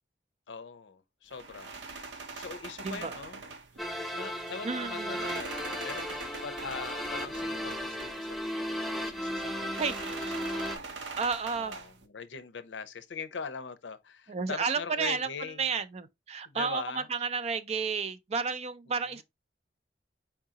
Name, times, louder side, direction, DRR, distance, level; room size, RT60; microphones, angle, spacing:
voice 1, 0.5-3.4 3.7-11.2 11.6-15.6 16.4-17.1 18.9-19.2, left 5 dB, 90° left, 0.6 m, -42 dB
sound 1, 1.3-12.1, right 3 dB, 80° right, 0.7 m, -44 dB
voice 2, 2.8-3.2 4.6-5.2 9.8-9.9 11.2-11.8 14.3-15.3 15.6-19.2, right 5 dB, 35° right, 0.4 m, -31 dB
sound 2, 3.8-10.8, equal, ahead, 0.6 m, -35 dB
4.7 x 3.7 x 2.8 m
head